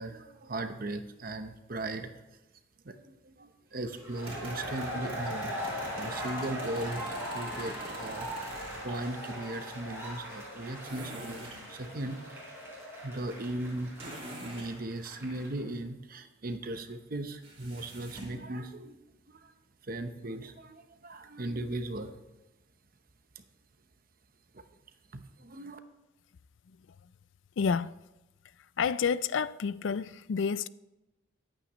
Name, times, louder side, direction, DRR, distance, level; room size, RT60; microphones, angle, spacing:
voice 1, 0.0-2.1 2.8-8.5 8.8-12.4 13.0-13.9 14.3-19.0 19.3-19.5 19.8-22.1 23.4-23.5 24.5-24.6 25.1-25.8, right 2 dB, 45° right, 0.8 m, -38 dB
sound 1, 3.9-15.6, equal, 10° right, 5.2 m, -40 dB
sound 2, 3.9-9.0 10.8-11.6 14.0-14.7 17.4-18.4, right 1 dB, 30° right, 4.7 m, -45 dB
voice 2, 27.6-27.9 28.8-30.7, left 6 dB, 65° left, 0.4 m, -29 dB
24.0 x 8.9 x 3.1 m
head